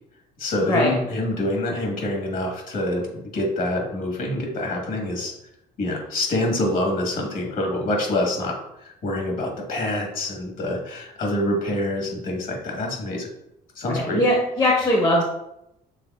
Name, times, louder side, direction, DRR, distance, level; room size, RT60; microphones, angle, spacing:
voice 1, 0.4-5.3 5.8-13.3 13.7-14.2, left 1 dB, 55° left, 1 dB, 1.5 m, -26 dB
voice 2, 13.9-15.2, left 1 dB, 25° left, -1 dB, 0.9 m, -20 dB
6.4 x 3.4 x 2.4 m, 0.83 s
cardioid pair, 110°, 17 cm